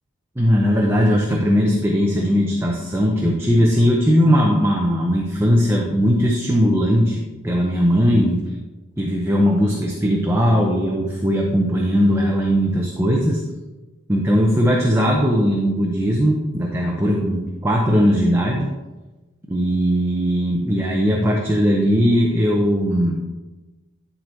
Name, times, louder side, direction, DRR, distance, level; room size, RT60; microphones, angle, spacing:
voice 1, 0.4-8.4 9.0-13.4 14.1-18.7 19.5-23.2, equal, 10° right, -1 dB, 0.7 m, -19 dB
10.5 x 3.9 x 4.4 m, 1.1 s
head